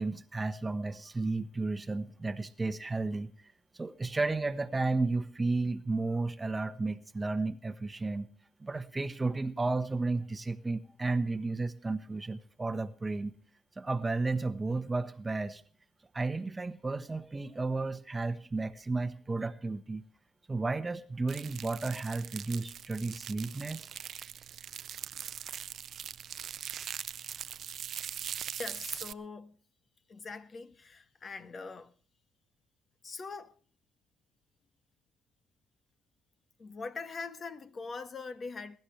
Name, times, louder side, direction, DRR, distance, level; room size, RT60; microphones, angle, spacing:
voice 1, 0.0-3.3 3.7-8.3 8.6-13.3 13.8-15.6 16.1-20.0 20.5-23.9, right 3 dB, 20° right, 1.1 m, -33 dB
sound 1, 21.3-29.1, right 9 dB, 55° right, 0.6 m, -41 dB
voice 2, 28.6-29.6 30.1-31.9 33.0-33.5 36.6-38.8, left 4 dB, 40° left, 1.4 m, -42 dB
22.0 x 12.0 x 3.3 m
supercardioid pair, 75°, 0 cm